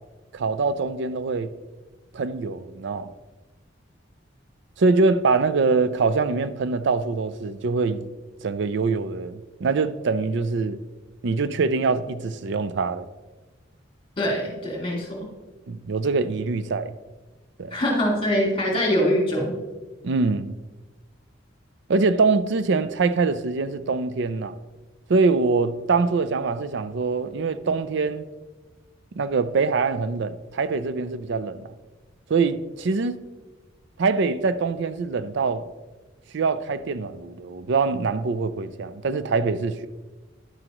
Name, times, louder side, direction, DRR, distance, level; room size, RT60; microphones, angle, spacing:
voice 1, 0.3-1.5 2.1-3.1 4.8-8.1 8.4-10.8 11.2-13.1 15.7-16.9 17.6-17.8 20.0-20.6 21.9-24.5 25.1-28.2 29.2-31.7 32.3-33.2 34.0-35.7 36.3-39.9, right 4 dB, 65° right, 0.5 m, -24 dB
voice 2, 14.2-15.3 17.7-19.6, equal, 30° left, 2.5 m, -23 dB
10.5 x 7.6 x 3.0 m
head